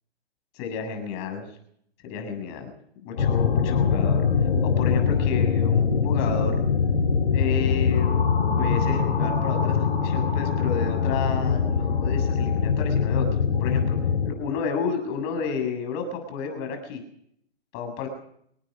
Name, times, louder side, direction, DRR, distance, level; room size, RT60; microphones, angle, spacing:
voice 1, 0.6-1.5 2.0-2.7 3.0-4.2 4.6-6.6 7.3-8.1 8.6-14.0 14.2-17.0 17.7-18.1, left 6 dB, 30° left, 5 dB, 7.6 m, -31 dB
sound 1, 3.2-14.3, left 6 dB, 65° left, 5.5 m, -23 dB
28.0 x 19.5 x 5.3 m, 0.69 s
hypercardioid pair, 130°, 32 cm